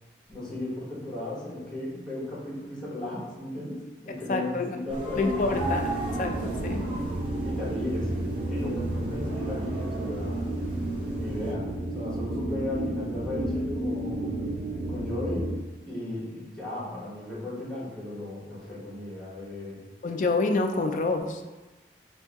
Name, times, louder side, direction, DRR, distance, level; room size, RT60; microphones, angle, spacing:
voice 1, 0.3-5.7 7.4-10.5 11.1-11.7 11.9-14.5 14.9-15.5 15.9-19.8, left 2 dB, 5° left, -9 dB, 1.3 m, -35 dB
voice 2, 4.1-4.7 5.2-5.8 6.2-6.8 20.0-21.4, left 3 dB, 45° left, 5 dB, 0.3 m, -27 dB
sound 1, 4.9-11.5, right 1 dB, 30° right, 0.9 m, -37 dB
sound 2, 5.5-15.6, right 1 dB, 85° right, 0.6 m, -31 dB
3.7 x 2.6 x 3.5 m, 1.2 s
head